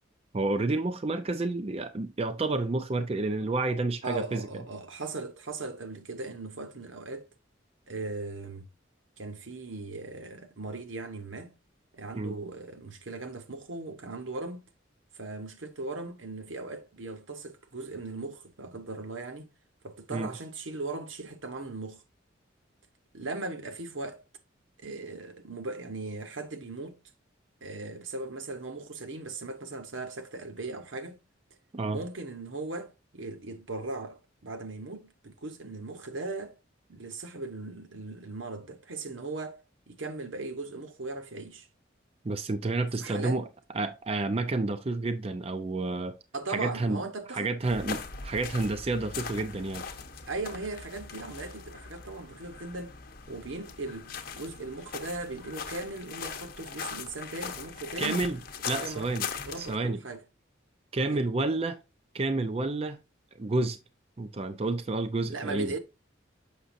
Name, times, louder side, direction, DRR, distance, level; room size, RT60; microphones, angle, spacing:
voice 1, 0.3-4.5 12.1-12.3 20.1-20.3 31.7-32.0 42.2-43.4 43.7-46.2 46.5-47.0 47.3-49.9 58.0-58.4 58.7-59.3 59.6-60.0 60.9-61.8 62.1-63.0 63.4-63.8 64.2-65.7, right 2 dB, 30° right, 0.5 m, -30 dB
voice 2, 4.0-7.3 7.9-8.7 9.2-11.5 11.9-14.6 15.2-19.5 19.8-22.0 23.1-24.2 24.8-27.0 27.6-31.2 31.9-36.5 36.9-39.6 39.9-41.7 43.0-43.4 46.3-47.5 50.3-53.0 53.3-58.3 58.7-59.1 59.4-60.2 61.1-61.2 65.3-65.8, right 3 dB, 80° right, 1.0 m, -38 dB
sound 1, 47.6-59.8, left 6 dB, 50° left, 0.9 m, -40 dB
6.6 x 6.0 x 2.6 m
head